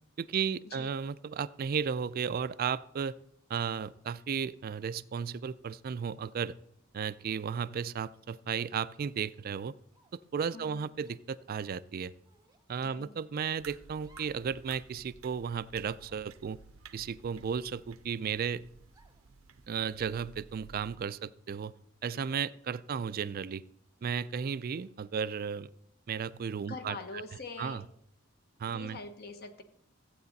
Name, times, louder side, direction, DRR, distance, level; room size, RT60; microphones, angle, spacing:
voice 1, 0.2-3.2 3.5-6.6 6.9-9.8 10.3-12.1 12.7-16.6 16.9-18.6 19.7-21.7 22.0-23.6 24.0-25.7 26.1-27.0 27.6-27.8 28.6-29.0, right 7 dB, 45° right, 16 dB, 0.3 m, -34 dB
sound 1, 9.9-10.3 11.0-11.2 12.2-12.7 14.0-14.5 14.9-15.0 15.8-16.3 17.2-18.1 18.9-19.3, right 2 dB, 20° right, 0.8 m, -63 dB
voice 2, 10.5-10.9 12.8-13.2 26.7-27.8 28.6-29.6, left 3 dB, 50° left, 8 dB, 1.2 m, -44 dB
sound 2, 13.6-21.0, right 5 dB, 80° right, 0.6 m, -54 dB
14.5 x 8.7 x 4.0 m, 0.69 s
head